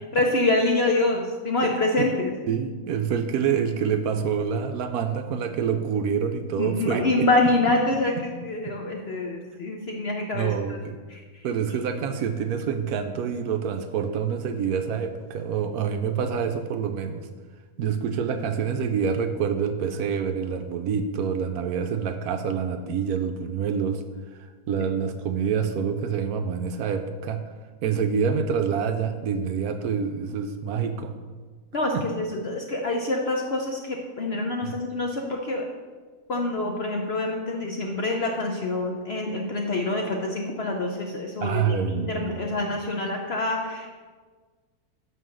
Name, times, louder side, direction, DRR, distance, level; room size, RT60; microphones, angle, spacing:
voice 1, 0.1-2.3 6.6-10.8 11.1-11.2 31.7-35.6 36.3-41.8 42.1-44.0, left 2 dB, 55° left, 1 dB, 0.7 m, -26 dB
voice 2, 1.6-2.1 2.5-7.3 8.2-8.3 8.7-8.8 9.5-9.6 10.3-11.0 11.4-17.3 17.8-24.0 24.7-27.4 27.8-31.1 31.9-32.1 34.6-34.8 41.4-42.5, right 7 dB, 70° right, 7 dB, 1.0 m, -27 dB
5.7 x 5.7 x 6.3 m, 1.4 s
omnidirectional pair, 1.7 m